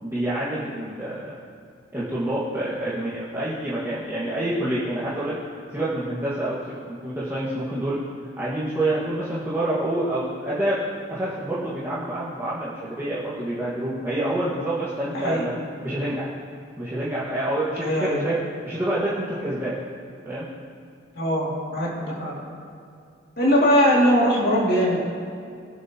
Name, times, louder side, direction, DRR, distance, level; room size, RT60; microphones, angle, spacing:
voice 1, 0.0-1.3 1.9-5.3 5.7-8.0 8.4-10.8 11.1-15.5 15.8-16.3 16.8-18.4 18.6-19.7 20.2-20.5, right 1 dB, 15° right, -10 dB, 1.6 m, -27 dB
voice 2, 15.1-15.4 17.8-18.2 21.1-22.4 23.4-25.0, equal, 50° left, -4 dB, 2.5 m, -21 dB
21.0 x 8.0 x 3.0 m, 2.3 s
head